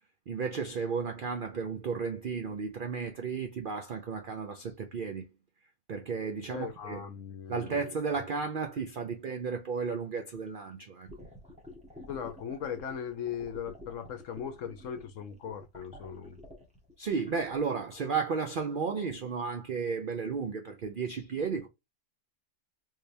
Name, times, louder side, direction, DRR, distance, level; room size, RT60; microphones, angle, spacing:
voice 1, 0.3-5.3 5.9-7.1 7.5-11.1 17.0-21.7, right 5 dB, 75° right, 0.4 m, -33 dB
voice 2, 6.5-7.8 12.1-16.4, left 8 dB, 65° left, 1.0 m, -38 dB
sound 1, 11.1-17.6, left 1 dB, 5° right, 1.1 m, -49 dB
3.7 x 3.3 x 2.6 m
omnidirectional pair, 1.6 m